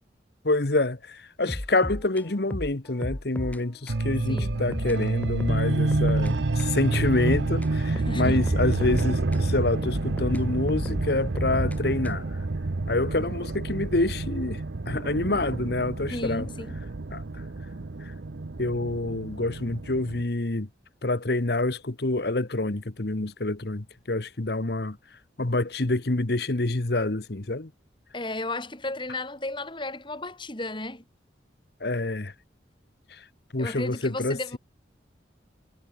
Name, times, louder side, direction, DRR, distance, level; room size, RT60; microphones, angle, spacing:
voice 1, 0.4-12.2 12.9-14.6 14.9-16.5 17.1-17.2 18.0-18.1 18.6-20.7 21.0-25.0 25.4-27.7 31.8-32.3 33.1-33.2 33.5-34.6, left 2 dB, 60° left, 1.3 m, -27 dB
sound 1, 1.5-3.6 3.9-4.0 4.4-6.3 6.6-9.5 9.8-12.4, left 1 dB, 10° left, 0.5 m, -34 dB
sound 2, 3.9-20.2, right 2 dB, 75° right, 0.8 m, -28 dB
voice 2, 8.0-8.4 16.1-16.8 28.1-31.0 33.6-34.6, left 2 dB, 25° left, 3.8 m, -34 dB
head